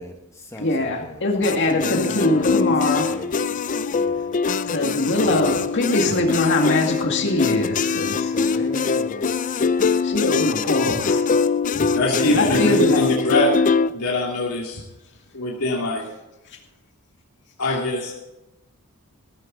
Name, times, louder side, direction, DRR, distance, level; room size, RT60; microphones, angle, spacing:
voice 1, 0.0-3.6 3.9-4.4 8.3-9.3 10.2-10.8 12.0-12.7, equal, 15° left, 3 dB, 1.3 m, -37 dB
voice 2, 0.6-3.1 4.7-8.6 9.5-9.6 10.0-11.2 11.7-11.9 12.2-13.0 17.7-17.8, left 2 dB, 55° left, 2 dB, 2.1 m, -22 dB
sound 1, 1.4-13.9, left 5 dB, 35° left, 0.4 m, -23 dB
voice 3, 11.9-13.6 13.9-14.8 15.3-16.0 17.6-18.2, left 1 dB, 75° left, -3 dB, 2.5 m, -22 dB
14.5 x 13.5 x 4.0 m, 0.96 s
head